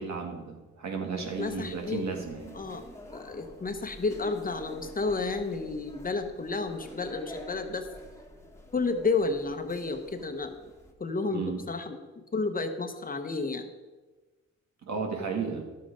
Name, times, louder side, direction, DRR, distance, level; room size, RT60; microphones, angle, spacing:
voice 1, 0.0-2.6 11.3-11.6 14.8-15.6, right 5 dB, 65° right, 3 dB, 1.9 m, -34 dB
sound 1, 1.2-10.9, left 1 dB, 10° left, 1.5 m, -49 dB
voice 2, 1.4-2.0 2.5-2.8 3.1-7.9 8.7-10.6 11.0-12.0 12.3-13.7, left 3 dB, 30° left, 7 dB, 1.1 m, -31 dB
11.5 x 7.6 x 5.1 m, 1.2 s
cardioid pair, 90°, 29 cm